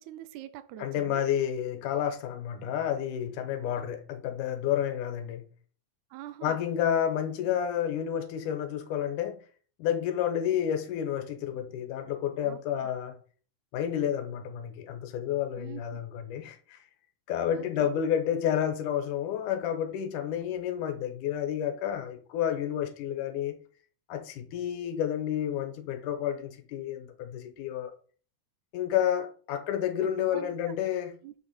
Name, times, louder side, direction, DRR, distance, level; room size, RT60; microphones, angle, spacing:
voice 1, 0.0-1.3 6.1-6.6 12.4-12.9 15.6-16.0 17.5-18.0 30.0-30.7 31.2-31.3, right 13 dB, 80° right, 1.9 m, -45 dB
voice 2, 0.8-5.5 6.4-9.4 9.8-13.2 13.7-16.8 17.3-23.6 24.1-27.9 28.7-31.2, left 9 dB, 90° left, 2.5 m, -30 dB
6.5 x 5.5 x 5.6 m
omnidirectional pair, 3.6 m